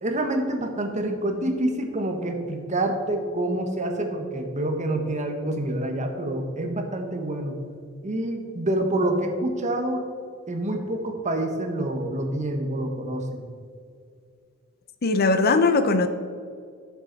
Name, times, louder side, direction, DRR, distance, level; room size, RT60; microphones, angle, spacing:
voice 1, 0.0-7.6 8.0-10.0 10.5-13.4, right 1 dB, 35° right, 4 dB, 1.2 m, -27 dB
voice 2, 15.0-16.1, left 3 dB, 45° left, 10 dB, 0.6 m, -20 dB
12.0 x 7.2 x 4.0 m, 2.2 s
head